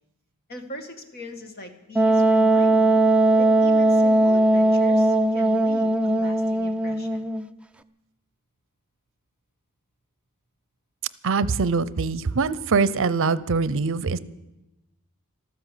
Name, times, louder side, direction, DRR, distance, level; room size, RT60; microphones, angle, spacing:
voice 1, 0.5-3.0 3.4-7.3, left 1 dB, 45° left, 6 dB, 1.8 m, -41 dB
Wind instrument woodwind instrument, 1.9-7.5, right 2 dB, 5° right, 0.5 m, -19 dB
voice 2, 11.2-14.2, right 4 dB, 65° right, 17 dB, 0.6 m, -23 dB
13.0 x 13.0 x 8.4 m, 0.98 s
head